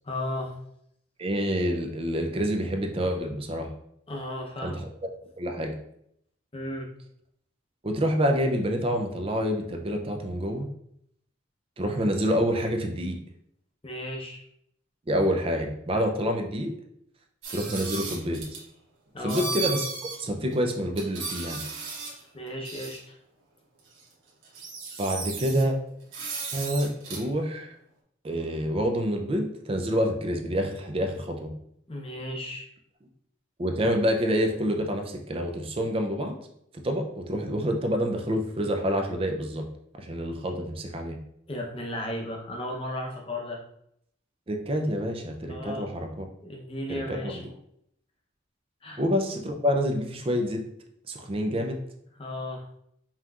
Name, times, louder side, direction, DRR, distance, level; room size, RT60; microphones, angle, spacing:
voice 1, 0.0-0.5 4.1-4.8 6.5-6.9 13.8-14.4 19.1-19.5 22.3-23.2 31.9-32.7 41.5-43.6 45.5-45.9 46.4-47.4 48.8-49.0 52.2-52.7, left 1 dB, 30° left, 0 dB, 0.7 m, -34 dB
voice 2, 1.2-3.7 4.6-4.9 5.4-5.7 7.8-10.7 11.8-13.2 15.1-16.7 17.5-18.4 19.2-19.9 20.2-21.6 25.0-25.8 26.5-27.8 28.2-31.5 33.6-36.4 36.8-39.6 40.0-41.2 44.5-46.3 46.9-47.5 49.0-50.6 51.1-51.8, equal, 30° right, 3 dB, 0.5 m, -27 dB
sound 1, 17.4-18.6 19.3-20.2 20.5-20.6 21.0-22.2 22.6-23.0 24.0-24.1 24.4-25.6 26.1-27.2, right 4 dB, 80° right, 1.1 m, -35 dB
5.4 x 2.9 x 2.4 m, 0.73 s
head